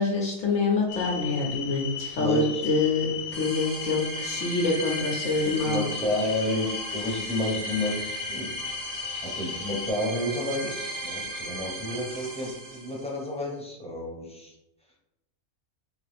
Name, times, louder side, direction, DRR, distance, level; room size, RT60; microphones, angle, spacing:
voice 1, 0.0-5.8, left 3 dB, 70° left, -2 dB, 1.1 m, -26 dB
sound 1, 0.9-9.9, left 8 dB, 45° left, 0.8 m, -36 dB
voice 2, 2.2-2.6 5.4-8.5 9.2-14.5, left 1 dB, 5° left, -3 dB, 0.7 m, -30 dB
sound 2, 3.3-13.2, right 2 dB, 35° right, 0.8 m, -37 dB
3.7 x 3.3 x 3.4 m, 0.88 s
omnidirectional pair, 1.4 m